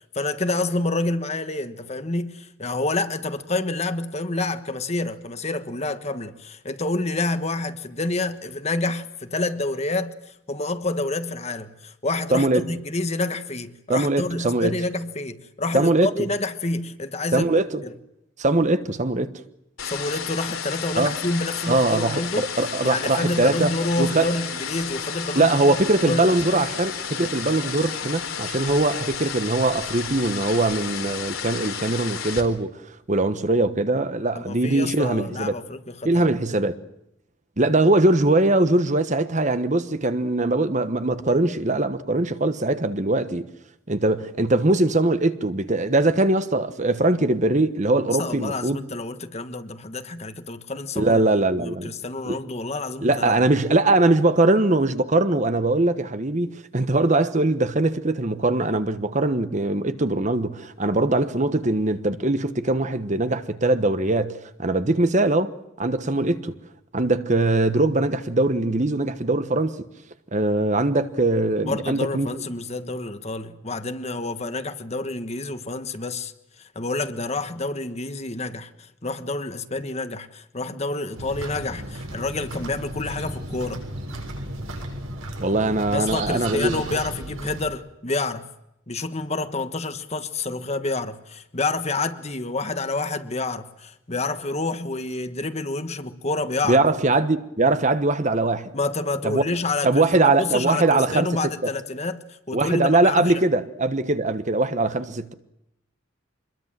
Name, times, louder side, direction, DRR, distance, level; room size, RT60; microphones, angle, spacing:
voice 1, 0.0-17.9 19.8-22.5 22.8-25.8 26.0-26.7 34.3-36.3 48.2-51.2 51.6-53.4 71.6-76.3 76.7-83.8 85.9-88.5 88.9-96.8 98.7-102.2 102.5-103.4, left 2 dB, 30° left, 1.4 m, -28 dB
voice 2, 12.3-12.6 13.9-14.7 15.7-16.1 17.3-17.8 18.4-19.4 21.0-21.2 21.7-24.3 25.3-32.7 33.1-35.5 36.0-36.8 37.6-43.5 43.9-48.8 50.9-51.9 52.3-52.4 53.0-65.5 65.8-66.5 66.9-69.8 70.3-72.3 85.4-86.8 96.7-98.7 99.2-99.4 99.8-101.3 102.5-105.3, right 2 dB, 35° right, 1.2 m, -21 dB
sound 1, 19.8-32.4, left 7 dB, 85° left, 4.1 m, -32 dB
sound 2, 81.1-87.7, right 1 dB, 90° right, 7.2 m, -34 dB
26.0 x 21.5 x 7.5 m
head